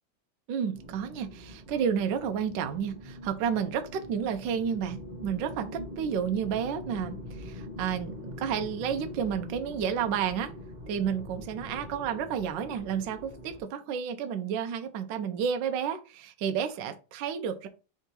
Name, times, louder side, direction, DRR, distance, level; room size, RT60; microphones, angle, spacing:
voice 1, 0.5-10.5 10.9-17.7, right 7 dB, 75° right, 7 dB, 1.2 m, -31 dB
sound 1, 0.7-13.6, left 1 dB, 30° right, 0.8 m, -43 dB
3.7 x 3.5 x 4.1 m, 0.33 s
omnidirectional pair, 2.2 m